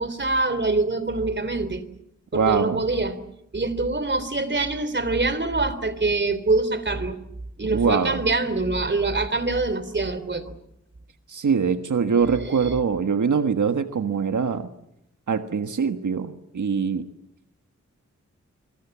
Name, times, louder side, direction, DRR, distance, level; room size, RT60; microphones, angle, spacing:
voice 1, 0.0-1.8 2.3-3.2 3.5-7.1 7.6-10.4 12.6-12.7, right 3 dB, 40° right, 12 dB, 3.4 m, -24 dB
voice 2, 2.3-2.9 7.7-8.2 11.3-14.7 15.3-17.1, right 6 dB, 90° right, 7 dB, 1.5 m, -23 dB
27.0 x 24.5 x 7.3 m, 0.79 s
wide cardioid pair, 100°, 29 cm